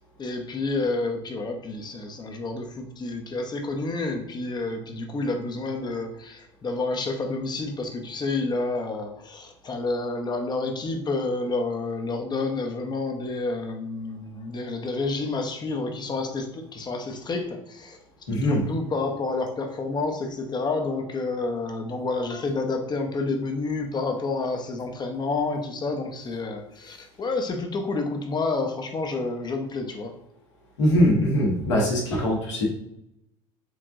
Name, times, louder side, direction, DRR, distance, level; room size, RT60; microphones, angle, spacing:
voice 1, 0.2-18.0 18.4-30.1, left 3 dB, 30° left, 4 dB, 0.8 m, -29 dB
voice 2, 18.3-18.6 30.8-32.7, equal, 75° left, -3 dB, 1.5 m, -22 dB
4.7 x 3.4 x 2.6 m, 0.78 s
figure-of-eight pair, 65°, 15 cm